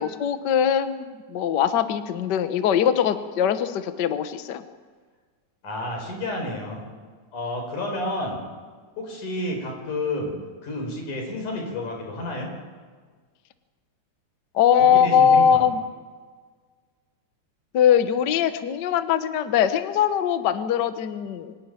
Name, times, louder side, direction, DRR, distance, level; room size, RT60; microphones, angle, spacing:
voice 1, 0.0-4.6 14.5-15.8 17.7-21.5, left 8 dB, 70° left, 10 dB, 1.0 m, -21 dB
voice 2, 5.6-6.8 7.3-8.4 9.0-10.3 10.6-12.5 14.8-15.6, left 1 dB, 90° left, 1 dB, 6.0 m, -30 dB
24.5 x 12.0 x 8.9 m, 1.5 s
omnidirectional pair, 3.4 m